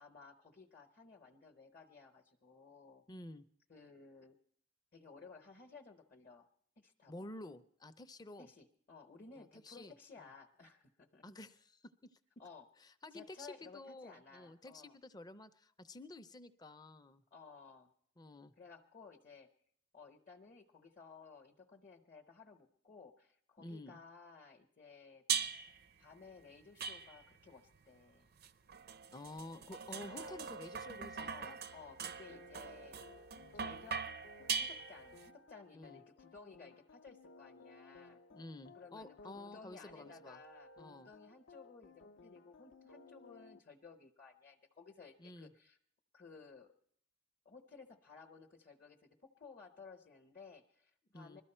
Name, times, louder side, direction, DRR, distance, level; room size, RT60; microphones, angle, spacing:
voice 1, 0.0-3.0 3.7-4.4 4.9-6.5 6.8-7.3 8.4-11.3 12.4-12.7 13.1-15.0 17.3-17.9 18.6-19.5 19.9-25.2 26.0-28.3 30.1-30.6 31.1-33.1 33.5-34.1 34.6-38.2 38.7-40.7 41.0-45.8 46.1-46.7 47.4-51.4, left 4 dB, 40° left, 3 dB, 0.9 m, -57 dB
voice 2, 3.1-3.5 7.1-8.5 9.4-10.3 11.2-12.2 12.8-17.2 18.2-18.5 23.6-24.0 29.1-31.6 33.4-33.6 35.7-36.0 38.3-40.4 40.8-41.1 45.2-45.5 51.1-51.4, left 2 dB, 20° left, 11 dB, 0.5 m, -51 dB
sound 1, 25.3-25.8 26.8-27.5 28.4-35.3, right 6 dB, 50° right, 0.5 m, -41 dB
sound 2, 32.3-43.6, left 3 dB, 60° left, 0.6 m, -59 dB
21.0 x 13.5 x 4.4 m, 0.68 s
head